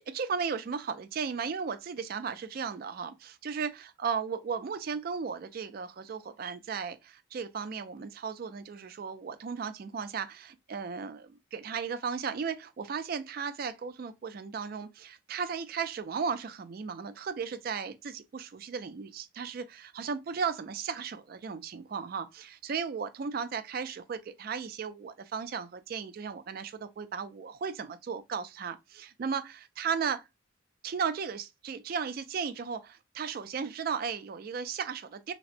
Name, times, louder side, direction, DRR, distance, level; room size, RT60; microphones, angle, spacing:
voice 1, 0.0-30.3 30.8-35.3, right 6 dB, 50° right, 0.3 m, -35 dB
4.0 x 2.1 x 2.5 m
head